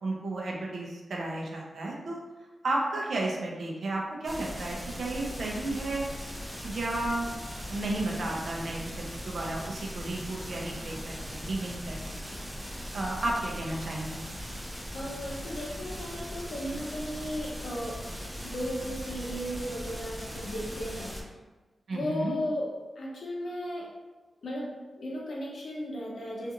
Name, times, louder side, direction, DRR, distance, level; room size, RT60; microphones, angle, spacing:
voice 1, 0.0-2.2 2.6-6.3 6.6-7.3 7.7-12.2 12.9-14.2 21.9-22.3, right 2 dB, 65° right, -2 dB, 0.5 m, -33 dB
sound 1, 4.2-21.2, equal, ahead, 0.5 m, -39 dB
voice 2, 14.9-18.0 18.4-21.2 21.9-22.7 23.0-23.9 24.4-24.7 25.0-26.5, equal, 60° left, -3 dB, 0.6 m, -35 dB
2.5 x 2.4 x 2.8 m, 1.2 s
wide cardioid pair, 155°, 0 cm